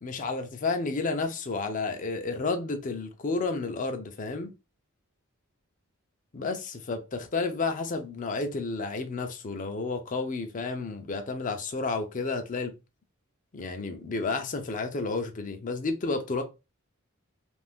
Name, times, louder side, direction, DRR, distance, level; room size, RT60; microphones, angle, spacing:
voice 1, 0.0-4.5 6.3-12.7 13.5-16.4, left 3 dB, 40° left, 0.5 m, -31 dB
2.5 x 2.5 x 3.5 m
head